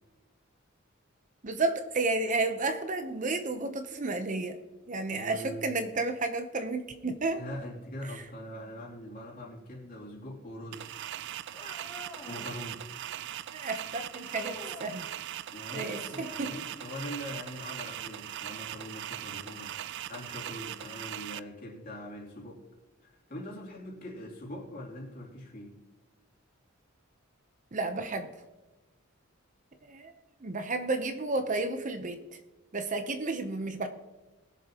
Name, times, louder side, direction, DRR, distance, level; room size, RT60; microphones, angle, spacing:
voice 1, 1.4-4.6 4.9-7.4 13.5-15.1 15.7-16.5 27.7-28.3 29.8-30.1 30.4-32.2 32.7-33.9, right 3 dB, 40° right, 8 dB, 0.8 m, -32 dB
voice 2, 5.1-5.7 7.4-11.0 12.2-12.8 15.5-22.6 23.0-25.8, equal, 45° left, -3 dB, 3.0 m, -42 dB
sound 1, 10.7-21.4, right 12 dB, 60° right, 0.3 m, -40 dB
sound 2, 11.5-12.6 14.2-14.9 16.0-16.7 18.7-18.8 19.7-19.8 20.7-20.8, left 1 dB, 20° left, 3.1 m, -47 dB
20.5 x 7.2 x 2.9 m, 1.1 s
head